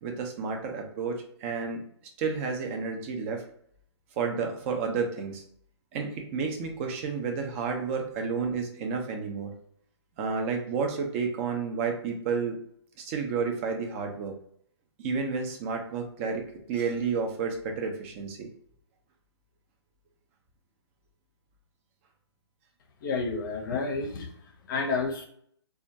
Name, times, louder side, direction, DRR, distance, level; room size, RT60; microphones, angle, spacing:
voice 1, 0.0-1.8 2.2-3.4 4.2-5.4 5.9-9.5 10.2-12.6 13.0-14.4 15.0-18.5, right 5 dB, 30° right, 3 dB, 0.4 m, -31 dB
voice 2, 23.0-25.3, left 4 dB, 45° left, 3 dB, 0.6 m, -30 dB
2.2 x 2.1 x 2.6 m, 0.67 s
hypercardioid pair, 140°, 15 cm